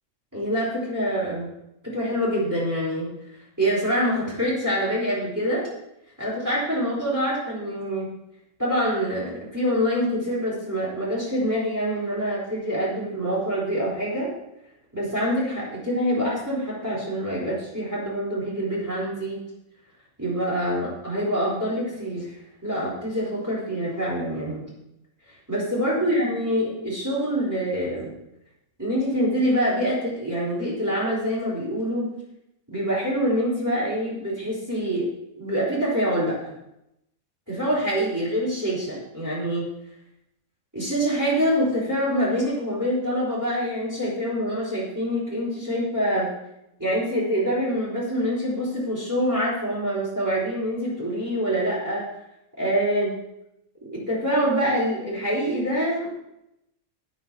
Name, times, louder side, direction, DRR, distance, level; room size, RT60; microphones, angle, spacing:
voice 1, 0.3-1.5 1.8-3.1 3.6-5.7 6.2-8.1 8.6-14.3 14.9-19.4 20.2-22.3 22.6-24.6 25.5-28.1 28.8-32.1 32.7-35.1 35.4-36.5 37.5-39.7 40.7-46.3 46.8-52.1 52.6-53.1 53.9-56.1, equal, 15° right, -7 dB, 4.1 m, -25 dB
12.5 x 9.4 x 2.9 m, 0.85 s
omnidirectional pair, 1.4 m